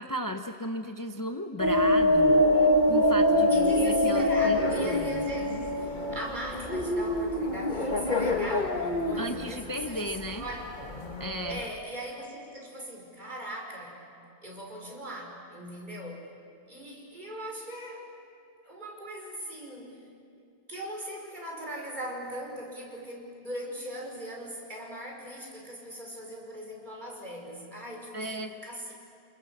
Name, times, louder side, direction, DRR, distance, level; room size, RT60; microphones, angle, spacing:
voice 1, 0.0-5.3 9.2-10.4 11.2-11.6 28.1-28.6, equal, 20° left, 5 dB, 0.8 m, -35 dB
sound 1, 1.6-11.7, left 1 dB, 45° left, 1.8 m, -25 dB
voice 2, 3.5-11.0 11.5-14.0 14.4-16.3 16.7-18.1 18.6-20.0 20.7-28.9, right 1 dB, 45° right, -1 dB, 5.8 m, -40 dB
28.5 x 28.5 x 7.3 m, 2.4 s
omnidirectional pair, 1.1 m